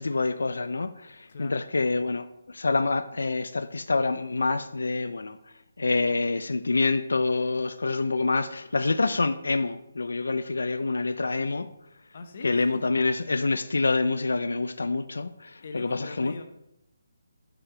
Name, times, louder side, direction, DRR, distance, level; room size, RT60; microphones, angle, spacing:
voice 1, 0.0-5.4 5.8-11.7 12.4-16.3, left 3 dB, 90° left, 0.3 m, -27 dB
voice 2, 1.3-1.7 12.1-12.9 15.6-16.4, left 3 dB, 45° left, 0.7 m, -40 dB
5.0 x 4.7 x 4.3 m
hypercardioid pair, 170°, 0 cm